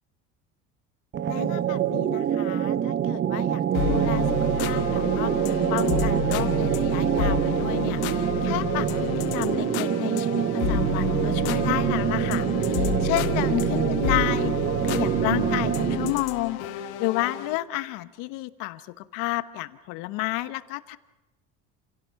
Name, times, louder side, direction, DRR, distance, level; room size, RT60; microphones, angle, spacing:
sound 1, 1.1-16.3, right 9 dB, 35° right, 0.8 m, -25 dB
voice 1, 1.3-3.6 3.9-14.5 14.8-21.0, left 18 dB, 70° left, 14 dB, 1.1 m, -31 dB
sound 2, 3.7-17.6, left 8 dB, 85° left, 1.4 m, -30 dB
28.0 x 17.0 x 5.8 m, 1.1 s
supercardioid pair, 115°, 33 cm